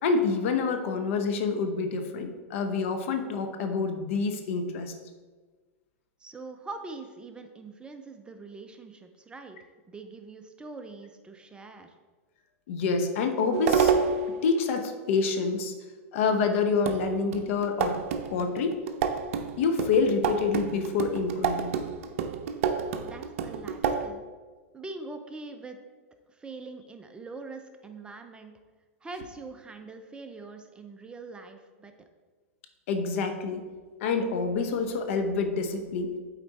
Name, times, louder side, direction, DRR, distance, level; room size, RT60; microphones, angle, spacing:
voice 1, 0.0-4.9 12.7-13.9 14.4-15.7 16.1-18.0 18.3-18.8 19.6-21.7 32.9-33.6 34.0-36.1, left 4 dB, 65° left, 6 dB, 0.9 m, -27 dB
voice 2, 6.2-9.6 9.9-11.9 23.0-24.2 24.7-25.8 26.3-28.5 29.0-31.9, right 3 dB, 10° right, 6 dB, 0.5 m, -43 dB
sound 1, 13.5-14.4 16.3-16.4 16.9-24.1, right 6 dB, 65° right, 0.6 m, -28 dB
8.2 x 4.2 x 4.1 m, 1.4 s
hypercardioid pair, 125°, 8 cm